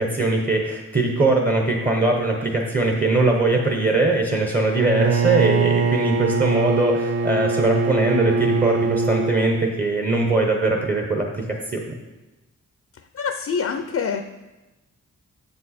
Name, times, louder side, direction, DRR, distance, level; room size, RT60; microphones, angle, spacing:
voice 1, 0.0-11.9, right 2 dB, 30° right, 1 dB, 0.9 m, -21 dB
Bowed string instrument, 4.7-9.5, right 4 dB, 55° right, 0.4 m, -22 dB
voice 2, 13.1-14.2, left 6 dB, 50° left, 7 dB, 0.5 m, -25 dB
7.4 x 5.2 x 4.2 m, 1.1 s
cardioid pair, 80°, 31 cm